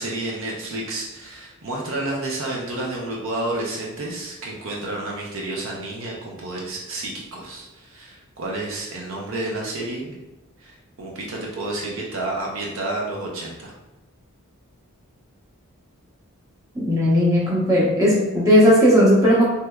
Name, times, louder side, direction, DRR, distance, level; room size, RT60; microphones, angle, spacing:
voice 1, 0.0-10.2 10.6-13.8, right 2 dB, 60° right, -2 dB, 0.5 m, -30 dB
voice 2, 16.7-19.4, equal, 15° right, -6 dB, 0.8 m, -16 dB
3.2 x 2.9 x 2.3 m, 1.0 s
head